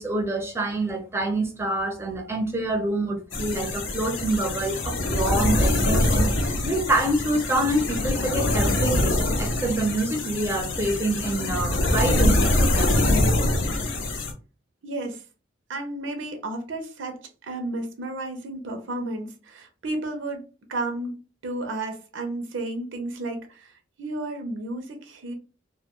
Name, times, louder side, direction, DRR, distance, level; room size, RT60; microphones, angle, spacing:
voice 1, 0.0-13.0, right 2 dB, 15° right, 0.5 m, -26 dB
sound 1, 3.3-14.3, left 1 dB, 80° left, 0.6 m, -24 dB
voice 2, 14.8-15.2 15.7-20.4 20.7-21.2 21.4-25.3, right 2 dB, 85° right, 0.5 m, -32 dB
2.2 x 2.2 x 2.9 m
head